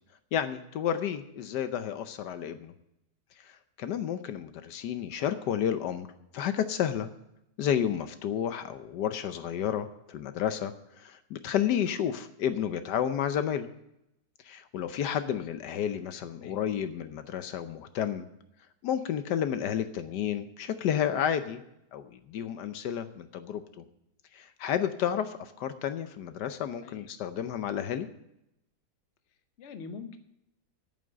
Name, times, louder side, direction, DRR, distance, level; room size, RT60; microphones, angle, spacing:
voice 1, 0.3-2.7 3.4-6.1 6.3-7.1 7.6-13.7 14.5-18.3 18.8-21.6 21.9-23.8 24.3-28.1, left 9 dB, 75° left, 10 dB, 1.3 m, -31 dB
voice 2, 29.6-30.2, left 5 dB, 50° left, 8 dB, 1.0 m, -43 dB
8.7 x 7.4 x 8.7 m, 0.82 s
omnidirectional pair, 1.9 m